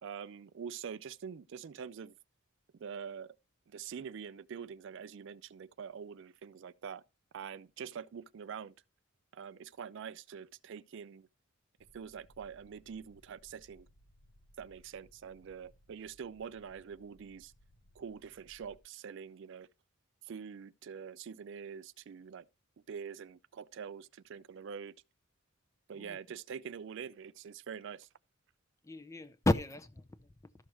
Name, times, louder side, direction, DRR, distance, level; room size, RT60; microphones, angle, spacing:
voice 1, 0.0-2.1 2.7-3.4 3.7-7.0 7.3-8.7 9.3-11.3 11.9-13.9 14.6-17.5 18.0-19.7 20.2-22.4 22.9-25.0 25.9-28.1, right 7 dB, 55° right, 0.4 m, -45 dB
sound 1, 11.8-18.8, equal, 60° left, 0.8 m, -64 dB
voice 2, 28.8-30.7, left 2 dB, 15° left, 0.5 m, -34 dB
13.0 x 6.3 x 3.0 m
head